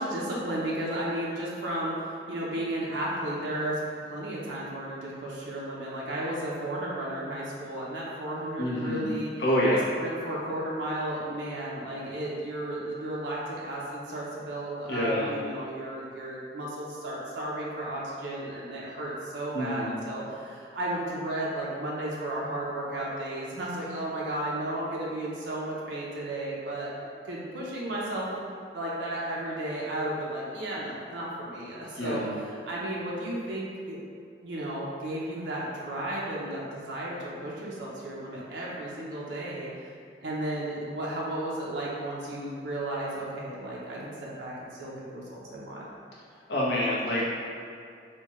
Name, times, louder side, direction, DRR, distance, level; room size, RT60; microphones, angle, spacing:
voice 1, 0.0-2.0 2.3-9.3 10.0-26.9 27.2-28.4 28.7-32.3 32.7-34.0 34.4-39.7 40.2-44.5 44.8-45.9, right 1 dB, 80° right, -5 dB, 0.6 m, -34 dB
voice 2, 8.6-9.1 9.4-9.8 14.9-15.3 19.5-19.9 32.0-32.3 46.5-47.2, left 1 dB, 70° left, -6 dB, 0.8 m, -27 dB
4.2 x 2.2 x 3.0 m, 2.3 s
head